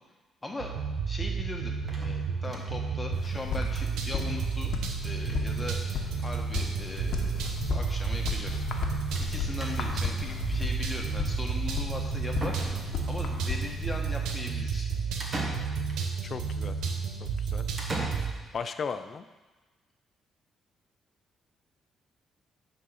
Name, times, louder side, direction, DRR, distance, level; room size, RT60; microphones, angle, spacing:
voice 1, 0.4-0.7 1.0-4.8 5.0-5.8 6.2-8.5 9.2-14.9, left 2 dB, 15° left, 0 dB, 1.4 m, -39 dB
sound 1, 0.6-18.3, right 6 dB, 85° right, 0.8 m, -32 dB
sound 2, 1.9-2.9 3.3-3.4 3.6-3.7 4.0-4.1 5.2-5.5 5.7-6.1 6.9-7.0 7.3-7.4 9.2-9.3 9.6-10.1 11.9-12.0 12.4-13.2 15.2-16.1 17.8-18.7, right 1 dB, 35° right, 1.5 m, -39 dB
sound 3, 3.1-14.0, left 6 dB, 70° left, 1.1 m, -35 dB
voice 2, 16.2-16.8 17.4-17.7 18.5-19.3, left 6 dB, 50° left, 10 dB, 0.5 m, -35 dB
9.1 x 4.0 x 5.7 m, 1.2 s
cardioid pair, 90°, 0 cm